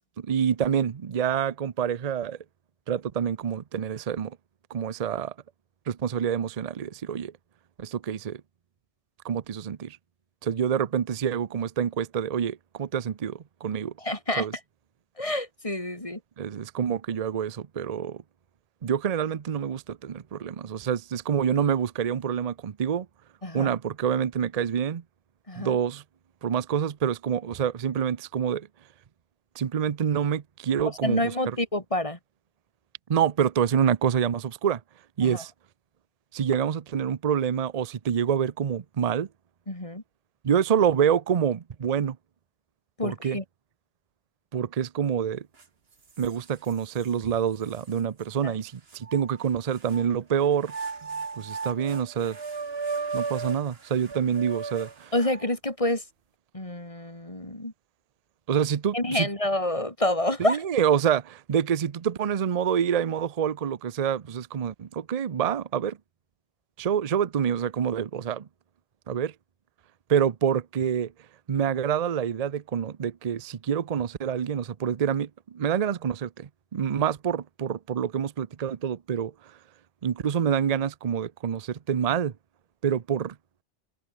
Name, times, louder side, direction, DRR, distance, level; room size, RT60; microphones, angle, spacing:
voice 1, 0.2-2.4 2.9-4.4 4.7-5.3 5.9-7.3 7.8-8.4 9.2-10.0 10.4-13.9 14.4-14.5 16.4-18.2 18.8-23.1 23.5-25.0 25.6-26.0 26.4-28.7 29.6-31.2 31.5-31.6 33.1-34.8 35.2-35.5 36.3-39.3 40.4-42.2 43.0-43.4 44.5-45.5 46.2-50.7 51.4-52.4 53.1-55.1 58.5-59.3 60.4-66.0 66.8-68.5 69.1-69.3 70.1-71.1 71.5-79.6 80.0-82.3 82.8-83.3, right 8 dB, 40° right, 0.6 m, -27 dB
voice 2, 14.0-14.5 15.2-16.2 23.4-23.7 25.5-25.8 30.9-32.2 35.2-35.4 39.7-40.0 43.0-43.4 48.4-48.5 55.1-56.1 56.5-57.7 58.9-60.6, left 1 dB, 30° left, 4.0 m, -28 dB
sound 1, 45.6-45.7 46.2-47.1 47.7-47.8 48.9-50.1 50.6-55.5, right 4 dB, 60° right, 2.1 m, -35 dB
omnidirectional pair, 1.2 m